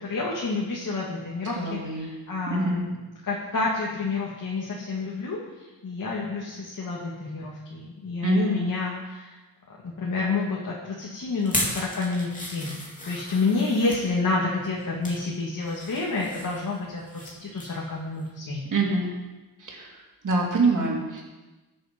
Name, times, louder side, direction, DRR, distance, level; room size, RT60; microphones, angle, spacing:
voice 1, 0.0-3.0 3.2-9.3 9.8-12.8 13.0-18.6, left 3 dB, 55° left, -4 dB, 2.5 m, -29 dB
voice 2, 1.5-2.1 2.5-2.8 8.2-8.6 18.7-19.1 19.6-20.0 20.2-21.2, right 2 dB, 50° right, -1 dB, 3.2 m, -25 dB
sound 1, 11.4-14.0 14.6-15.2 15.6-17.3 17.6-17.8 18.2-18.3, left 1 dB, 20° left, 2.7 m, -34 dB
21.5 x 7.1 x 5.4 m, 1.2 s
wide cardioid pair, 170°, 38 cm